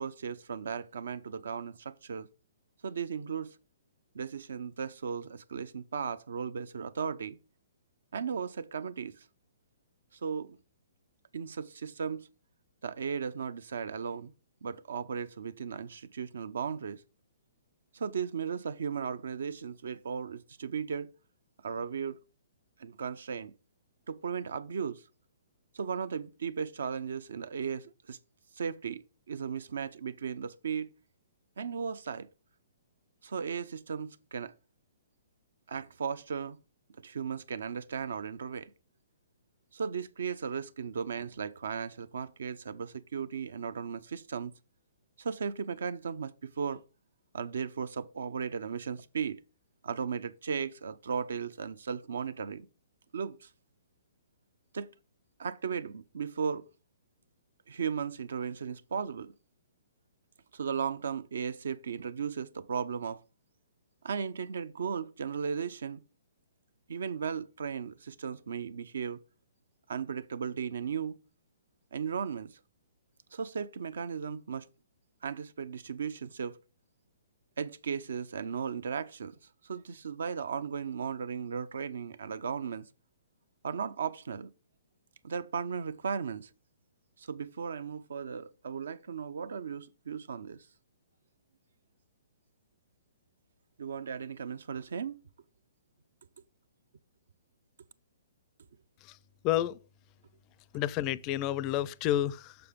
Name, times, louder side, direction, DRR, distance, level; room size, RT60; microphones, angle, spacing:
voice 1, 0.0-2.3 2.8-3.6 4.1-7.4 8.1-9.2 10.2-10.6 11.3-12.3 12.8-14.3 14.6-17.0 17.9-21.1 21.6-22.2 22.8-23.5 24.1-25.0 25.7-28.2 28.6-30.9 31.6-32.3 33.2-34.5 35.7-36.6 37.0-38.7 39.7-44.5 45.2-46.8 47.3-49.4 49.8-52.7 53.1-53.5 54.7-54.9 55.4-56.7 57.7-59.3 60.5-63.2 64.0-66.0 66.9-69.2 69.9-71.2 71.9-72.6 73.3-74.7 75.2-76.6 77.6-79.4 79.6-82.9 83.6-84.5 85.2-86.5 87.2-90.6 93.8-95.2, right 6 dB, 75° right, 0.6 m, -36 dB
voice 2, 99.4-99.8 100.7-102.6, left 13 dB, 30° left, 0.4 m, -29 dB
6.8 x 5.8 x 3.6 m
hypercardioid pair, 145°, 0 cm